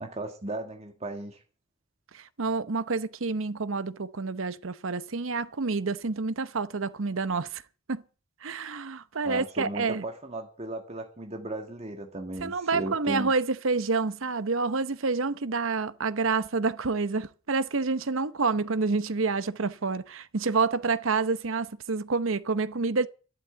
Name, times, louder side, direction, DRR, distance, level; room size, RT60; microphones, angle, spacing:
voice 1, 0.0-1.4 9.2-13.3, right 1 dB, 30° right, 1.7 m, -36 dB
voice 2, 2.1-7.6 7.9-8.0 8.4-10.0 12.4-23.1, right 4 dB, 75° right, 0.9 m, -28 dB
12.5 x 12.0 x 7.9 m
head